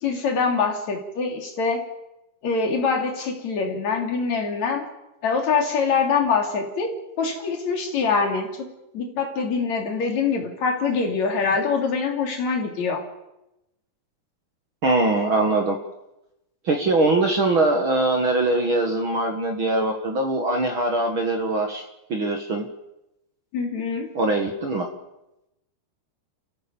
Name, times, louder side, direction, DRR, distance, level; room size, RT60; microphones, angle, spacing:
voice 1, 0.0-1.8 2.4-4.8 5.2-6.9 7.2-8.7 8.9-13.0 23.5-24.1, left 5 dB, 45° left, 2 dB, 3.9 m, -24 dB
voice 2, 14.8-15.8 16.6-21.8 22.1-22.6 24.1-24.9, right 2 dB, 55° right, 3 dB, 1.5 m, -22 dB
28.5 x 16.0 x 7.1 m, 0.91 s
omnidirectional pair, 5.1 m